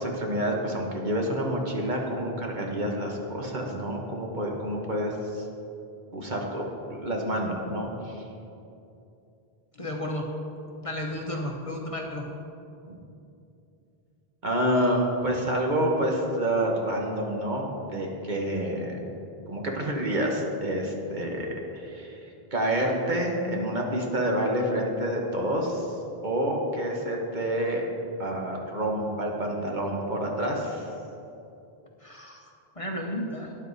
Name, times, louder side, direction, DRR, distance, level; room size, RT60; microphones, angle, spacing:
voice 1, 0.0-5.5 6.1-8.2 12.9-13.0 14.4-19.0 19.5-25.9 26.2-27.8 28.2-30.9, right 1 dB, 50° right, 0 dB, 1.5 m, -28 dB
voice 2, 9.7-10.3 10.8-12.3 32.0-32.5 32.8-33.6, left 1 dB, 35° left, 1 dB, 1.0 m, -33 dB
13.0 x 10.0 x 4.2 m, 2.7 s
omnidirectional pair, 1.0 m